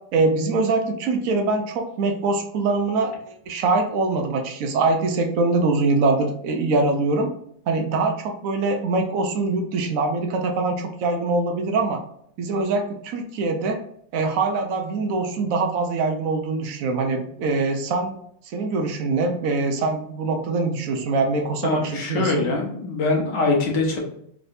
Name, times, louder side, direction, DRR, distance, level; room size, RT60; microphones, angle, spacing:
voice 1, 0.1-3.1 3.5-7.3 7.7-12.0 12.4-13.8 14.1-18.2 18.5-22.5, right 3 dB, 80° right, 4 dB, 0.7 m, -23 dB
voice 2, 21.6-24.0, left 3 dB, 65° left, 0 dB, 1.6 m, -23 dB
3.8 x 3.3 x 2.6 m, 0.69 s
omnidirectional pair, 2.1 m